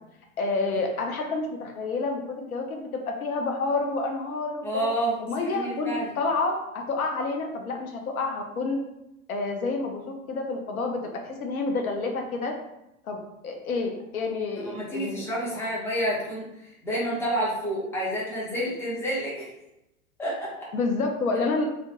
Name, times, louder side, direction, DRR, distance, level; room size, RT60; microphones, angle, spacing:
voice 1, 0.4-4.9 5.2-8.8 9.3-11.0 11.2-12.5 13.0-13.2 13.4-15.7 20.7-21.6, left 3 dB, 75° left, 2 dB, 0.6 m, -29 dB
voice 2, 4.6-6.1 14.6-19.5 20.2-20.7, right 1 dB, 5° left, -7 dB, 0.6 m, -29 dB
2.2 x 2.1 x 2.9 m, 0.88 s
figure-of-eight pair, 95°, 43 cm